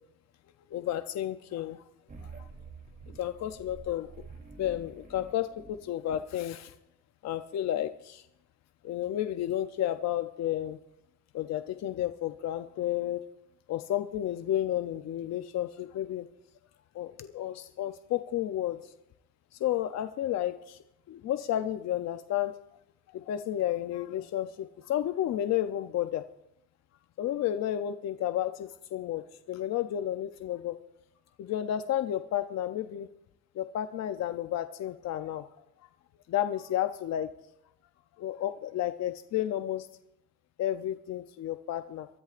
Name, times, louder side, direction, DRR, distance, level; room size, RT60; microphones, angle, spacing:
voice 1, 0.7-1.8 2.2-2.5 3.2-4.1 4.6-6.7 7.2-8.3 8.8-10.8 11.3-13.2 13.7-16.3 16.9-18.9 19.5-20.8 21.1-22.6 23.1-26.2 27.2-30.8 31.4-33.1 33.5-35.5 36.3-37.3 38.2-39.9 40.6-42.1, left 12 dB, 60° left, 9 dB, 0.6 m, -32 dB
sound 1, 2.1-6.2, right 4 dB, 30° right, 3.0 m, -48 dB
24.0 x 13.5 x 2.5 m, 0.82 s
cardioid pair, 120°, 30 cm